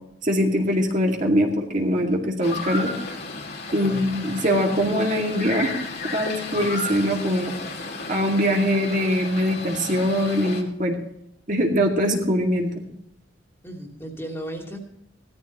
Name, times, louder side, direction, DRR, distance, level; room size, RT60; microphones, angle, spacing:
voice 1, 0.2-2.9 3.7-5.8 6.1-7.6 8.1-11.0 11.5-12.7, equal, 40° right, 0 dB, 2.2 m, -22 dB
sound 1, 2.4-10.6, left 3 dB, 55° left, 2.5 m, -33 dB
voice 2, 3.7-4.1 13.6-14.8, right 1 dB, 15° left, 1 dB, 2.8 m, -35 dB
18.0 x 13.5 x 3.0 m, 0.78 s
head